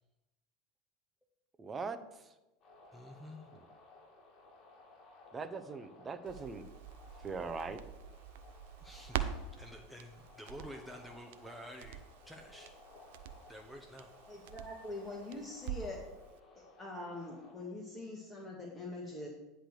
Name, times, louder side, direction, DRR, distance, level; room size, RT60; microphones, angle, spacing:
voice 1, 1.6-2.3 5.3-6.6 7.2-7.8, right 4 dB, 25° right, 8 dB, 0.7 m, -41 dB
sound 1, 2.6-17.5, left 2 dB, 45° left, 2.2 m, -59 dB
voice 2, 2.9-3.5 8.8-12.7 13.5-14.1, equal, ahead, 2 dB, 1.0 m, -50 dB
Crackle, 6.3-16.1 16.4-16.5, right 10 dB, 70° right, 0.6 m, -45 dB
voice 3, 14.3-16.0 16.5-19.3, left 2 dB, 25° left, -2 dB, 1.8 m, -44 dB
10.0 x 3.4 x 6.7 m, 1.0 s
hypercardioid pair, 85°, 0 cm